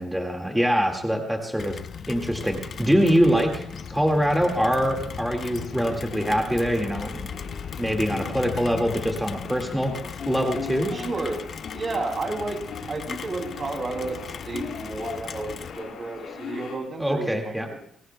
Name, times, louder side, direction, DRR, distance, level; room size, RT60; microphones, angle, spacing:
voice 1, 0.0-1.8 2.1-7.3 7.8-9.9 10.3-10.9 17.0-17.7, equal, 5° right, 2 dB, 2.0 m, -24 dB
Rain, 1.6-15.8, left 6 dB, 55° left, 0.7 m, -38 dB
sound 1, 2.7-16.8, left 5 dB, 75° left, 5.0 m, -40 dB
voice 2, 10.9-12.6 12.9-17.8, right 3 dB, 40° right, 3 dB, 2.8 m, -32 dB
29.5 x 14.5 x 2.3 m, 0.67 s
cardioid pair, 90°, 0 cm